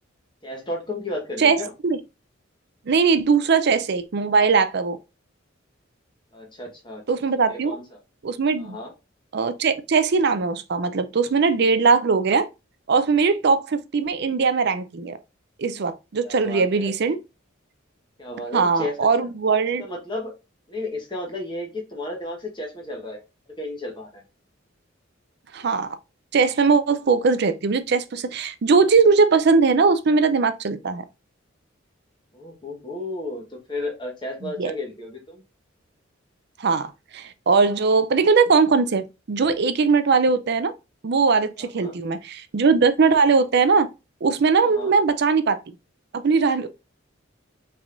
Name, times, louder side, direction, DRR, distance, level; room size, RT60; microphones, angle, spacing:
voice 1, 0.4-1.7 6.3-7.0 7.5-8.0 8.6-8.9 16.2-16.9 18.2-19.3 19.8-20.3 20.7-23.2 23.6-24.2 32.3-35.4 41.6-41.9 44.6-44.9, left 1 dB, 25° left, 1.3 m, -33 dB
voice 2, 2.9-5.0 7.1-7.8 8.2-8.8 9.3-12.5 12.9-15.2 15.6-17.2 18.5-19.9 25.5-26.0 26.3-31.0 34.4-34.7 36.6-40.7 41.0-43.9 44.2-45.6 46.2-46.7, right 4 dB, 60° right, 0.5 m, -20 dB
5.0 x 3.4 x 2.5 m
head